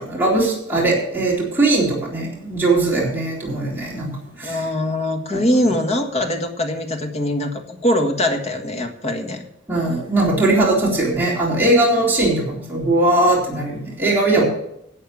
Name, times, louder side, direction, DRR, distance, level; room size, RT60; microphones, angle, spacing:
voice 1, 0.0-4.7 5.3-5.4 9.7-14.4, right 2 dB, 10° right, -6 dB, 3.9 m, -19 dB
voice 2, 4.4-9.4 14.4-14.5, left 1 dB, 35° left, 5 dB, 1.6 m, -22 dB
12.0 x 7.9 x 6.8 m, 0.77 s
head